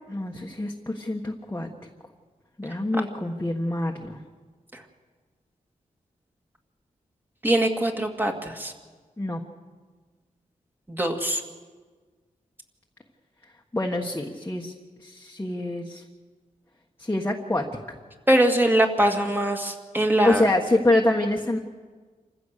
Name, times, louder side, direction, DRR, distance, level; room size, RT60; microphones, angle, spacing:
voice 1, 0.1-1.7 2.6-4.2 9.2-9.4 13.7-14.7 15.0-16.0 17.0-18.0 20.2-21.6, left 1 dB, 15° left, 0 dB, 1.4 m, -26 dB
voice 2, 7.4-8.7 10.9-11.4 18.3-20.4, right 1 dB, 15° right, 3 dB, 2.2 m, -22 dB
27.5 x 15.5 x 6.7 m, 1.5 s
wide cardioid pair, 100°, 14 cm